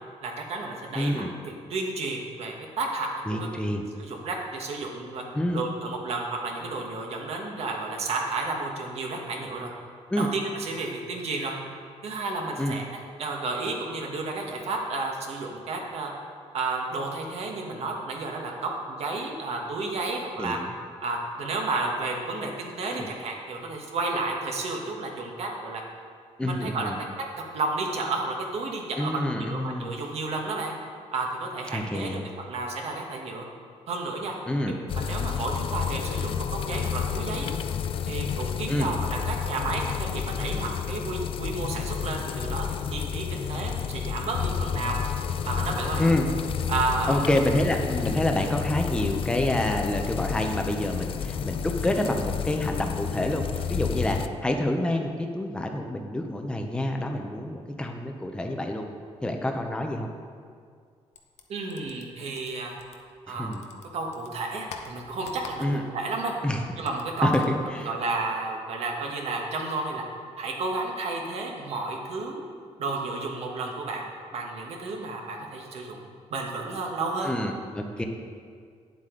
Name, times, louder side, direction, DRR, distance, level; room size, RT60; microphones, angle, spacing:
voice 1, 0.2-3.5 4.0-5.2 5.5-9.7 10.2-11.5 12.0-16.1 16.5-20.6 21.0-25.8 26.4-26.9 27.5-29.1 29.4-30.7 31.1-33.4 33.9-34.4 34.9-37.5 38.0-42.6 42.9-45.0 45.4-46.0 46.7-47.2 61.5-62.7 63.3-63.5 63.9-66.3 66.8-67.4 67.8-70.0 70.4-72.4 72.8-76.0 76.3-77.3, right 3 dB, 65° right, 1 dB, 1.3 m, -32 dB
voice 2, 0.9-1.3 3.3-3.8 5.3-5.6 10.1-10.3 12.6-12.7 20.4-20.7 22.9-23.1 26.4-27.0 29.0-29.9 31.7-32.2 34.5-34.8 38.7-38.9 46.0-46.3 47.1-53.4 53.7-58.9 59.2-60.1 63.3-63.6 65.6-65.8 66.4-66.6 67.2-67.4 67.7-67.9 77.2-78.0, left 1 dB, 10° left, 3 dB, 0.6 m, -27 dB
sound 1, 34.9-54.3, left 7 dB, 50° left, 0.4 m, -30 dB
sound 2, 61.1-63.3 63.5-66.0 66.3-67.6, left 6 dB, 70° left, 0.8 m, -45 dB
9.4 x 7.6 x 3.8 m, 2.1 s
cardioid pair, 135°, 12 cm